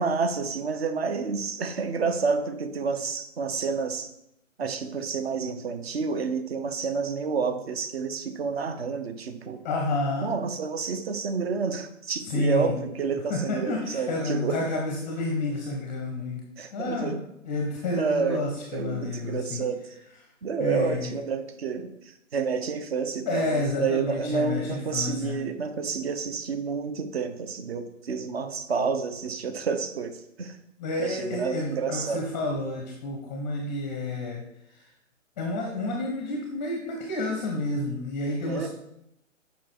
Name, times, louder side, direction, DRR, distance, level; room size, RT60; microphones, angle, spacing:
voice 1, 0.0-4.1 4.6-9.6 10.2-14.6 16.6-17.2 18.0-18.4 18.7-19.8 20.4-30.6 31.0-32.2 38.5-38.7, right 5 dB, 50° right, 9 dB, 1.0 m, -29 dB
voice 2, 9.6-10.3 12.2-12.7 13.3-16.4 16.7-19.6 20.6-21.1 23.3-25.4 30.8-34.4 34.7-34.9 35.4-38.7, left 2 dB, 15° left, 1 dB, 0.6 m, -30 dB
7.4 x 5.2 x 4.3 m, 0.79 s
figure-of-eight pair, 135°, 39 cm